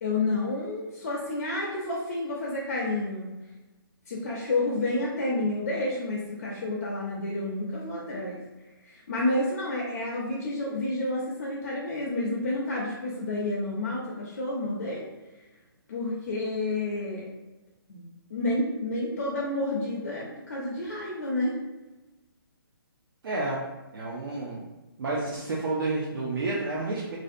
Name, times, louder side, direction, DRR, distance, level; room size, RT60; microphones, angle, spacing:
voice 1, 0.0-3.3 4.1-8.4 8.8-15.1 15.9-17.3 17.9-18.0 18.3-21.5, left 2 dB, 45° left, -4 dB, 0.4 m, -30 dB
voice 2, 23.2-23.6 23.9-24.7 25.0-27.2, right 2 dB, 65° right, -5 dB, 0.5 m, -30 dB
2.5 x 2.1 x 2.5 m, 1.1 s
hypercardioid pair, 165°, 13 cm